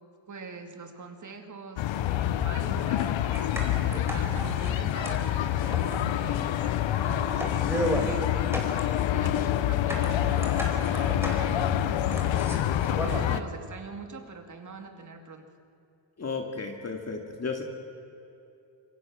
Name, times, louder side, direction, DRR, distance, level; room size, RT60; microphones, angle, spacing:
voice 1, 0.3-8.6 8.9-11.8 12.2-12.8 13.0-15.4, right 4 dB, 40° right, 5 dB, 2.4 m, -43 dB
sound 1, 1.8-13.4, left 12 dB, 70° left, 0.9 m, -27 dB
sound 2, 3.3-13.4, right 1 dB, 5° right, 4.4 m, -35 dB
voice 2, 16.2-17.6, left 4 dB, 35° left, 3 dB, 2.3 m, -33 dB
26.5 x 23.0 x 6.3 m, 2.8 s
cardioid pair, 115°, 47 cm